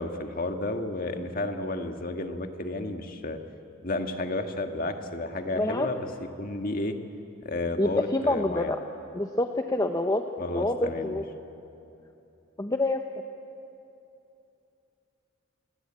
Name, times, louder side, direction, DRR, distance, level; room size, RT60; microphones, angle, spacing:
voice 1, 0.0-3.4 3.8-6.1 6.4-6.9 7.4-8.7 10.4-11.2, left 2 dB, 45° left, 5 dB, 1.7 m, -32 dB
voice 2, 5.5-5.9 7.8-8.8 9.1-10.2 10.5-11.2 12.6-13.0, left 2 dB, 20° left, 5 dB, 0.9 m, -26 dB
28.0 x 21.5 x 8.9 m, 2.8 s
head